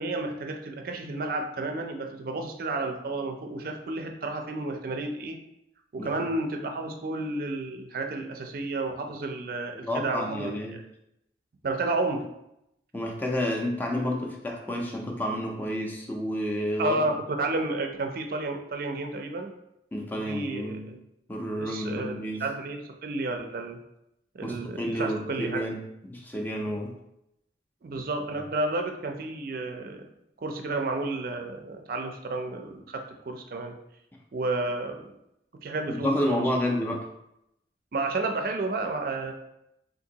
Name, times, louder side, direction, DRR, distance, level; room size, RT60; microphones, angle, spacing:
voice 1, 0.0-5.4 5.9-10.6 11.6-12.3 16.8-19.5 20.3-21.0 21.6-23.8 24.3-25.7 27.8-30.1 30.4-33.7 34.3-35.1 35.6-36.5 37.9-39.3, right 2 dB, 55° right, 4 dB, 0.4 m, -31 dB
voice 2, 6.0-6.3 9.8-10.8 12.9-17.2 19.9-20.9 21.3-22.4 24.4-26.9 35.9-37.0, equal, 10° left, 0 dB, 0.4 m, -30 dB
3.7 x 2.5 x 2.8 m, 0.83 s
head